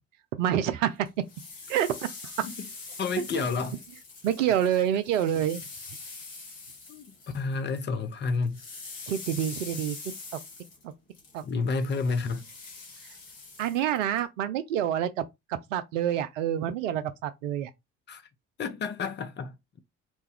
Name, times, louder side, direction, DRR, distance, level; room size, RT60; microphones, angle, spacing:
voice 1, 0.4-1.1 1.7-2.1 3.3-3.5 4.2-5.6 9.1-10.0 11.3-11.4 13.6-15.2 15.5-17.7, right 10 dB, 80° right, 0.5 m, -27 dB
sound 1, 1.1-7.9 8.1-14.2, left 3 dB, 80° left, 1.1 m, -44 dB
voice 2, 3.0-3.8 6.9-8.6 11.4-12.4 18.1-18.2 18.6-19.6, left 4 dB, 30° left, 0.6 m, -30 dB
2.9 x 2.2 x 3.3 m
figure-of-eight pair, 45°, 37 cm